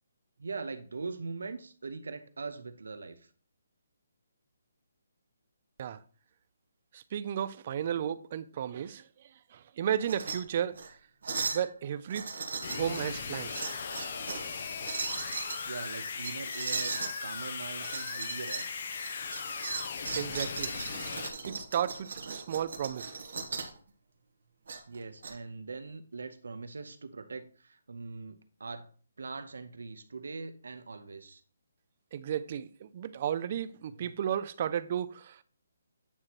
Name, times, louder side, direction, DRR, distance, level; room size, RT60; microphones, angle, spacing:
voice 1, 0.4-3.3 15.7-18.7 24.9-28.9 29.2-31.4 34.0-34.1, right 4 dB, 85° right, 0.8 m, -41 dB
voice 2, 6.9-9.1 9.5-10.7 11.5-12.3 12.7-13.7 20.1-20.7 21.4-23.2 32.1-35.4, right 9 dB, 30° right, 0.3 m, -33 dB
sound 1, 10.0-10.4 10.7-10.9 11.2-11.7 12.1-13.1 13.5-14.5 14.8-15.6 16.2-17.1 17.8-18.7 19.0-23.8 24.7-25.3, right 4 dB, 55° right, 1.3 m, -37 dB
sound 2, 12.6-21.3, left 5 dB, 40° left, 0.7 m, -38 dB
8.8 x 3.1 x 4.2 m
hypercardioid pair, 175°, 0 cm